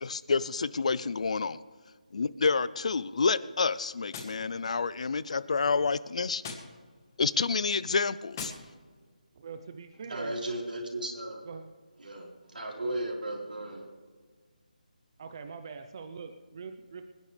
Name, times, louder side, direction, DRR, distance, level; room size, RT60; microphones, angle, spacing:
voice 1, 0.0-1.6 2.1-6.4 7.2-8.5, left 4 dB, 50° left, 17 dB, 0.5 m, -28 dB
Gunshot gunfire, 4.1-5.2 6.4-7.2 8.3-9.2, left 5 dB, 20° left, 1.6 m, -44 dB
voice 2, 9.3-10.3 11.5-11.6 15.2-17.1, right 5 dB, 30° right, 7 dB, 0.8 m, -43 dB
voice 3, 10.1-11.4 12.0-13.9, right 1 dB, 85° right, -1 dB, 4.5 m, -35 dB
26.5 x 10.5 x 3.4 m, 1.5 s
figure-of-eight pair, 170°, 5 cm